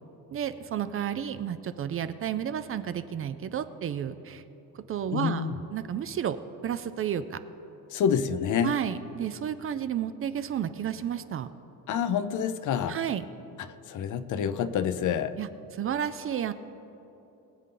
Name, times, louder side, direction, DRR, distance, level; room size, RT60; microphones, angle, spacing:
voice 1, 0.3-4.4 4.7-5.5 5.7-6.4 6.6-7.4 8.6-11.5 12.9-13.2 15.4-16.5, right 9 dB, 40° right, 12 dB, 0.4 m, -31 dB
voice 2, 5.1-5.6 7.9-8.8 11.9-13.0 13.9-15.4, left 7 dB, 55° left, 12 dB, 0.6 m, -27 dB
22.0 x 8.0 x 3.8 m, 3.0 s
cardioid pair, 150°, 37 cm